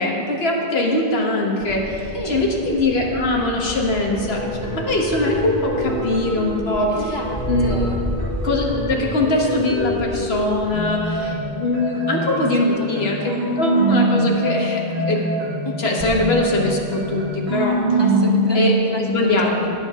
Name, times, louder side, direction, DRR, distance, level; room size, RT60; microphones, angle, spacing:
voice 1, 0.0-6.9 7.5-7.9 8.4-15.5 15.8-17.8 18.5-19.7, left 2 dB, 75° left, -1 dB, 1.6 m, -22 dB
sound 1, 1.6-11.2, left 1 dB, 45° left, 1.4 m, -33 dB
sound 2, 4.1-10.4 10.7-18.7, right 1 dB, 90° right, 2.1 m, -24 dB
voice 2, 6.9-8.0 12.6-13.4 15.6-16.0 18.0-19.7, left 1 dB, 25° left, 1 dB, 0.8 m, -32 dB
17.0 x 7.7 x 3.6 m, 2.6 s
omnidirectional pair, 1.1 m